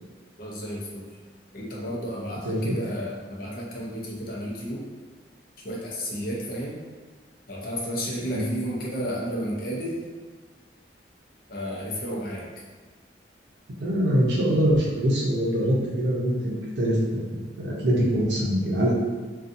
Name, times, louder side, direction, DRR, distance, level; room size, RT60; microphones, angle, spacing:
voice 1, 0.4-1.1 1.5-4.8 5.6-6.8 7.5-10.0 11.5-12.4, equal, 50° left, -4 dB, 0.6 m, -32 dB
voice 2, 13.8-18.9, equal, 75° right, -4 dB, 0.6 m, -24 dB
2.6 x 2.3 x 2.5 m, 1.4 s
head